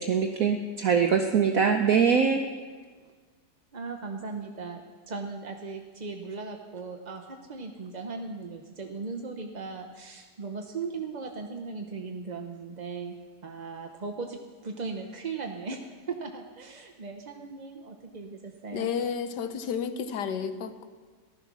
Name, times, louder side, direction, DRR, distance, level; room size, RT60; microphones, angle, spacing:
voice 1, 0.0-2.4, right 6 dB, 60° right, 5 dB, 1.1 m, -23 dB
voice 2, 3.7-18.9, right 4 dB, 40° right, 3 dB, 0.6 m, -38 dB
voice 3, 18.7-20.9, left 7 dB, 75° left, 10 dB, 1.5 m, -31 dB
15.0 x 12.0 x 6.1 m, 1.5 s
omnidirectional pair, 1.9 m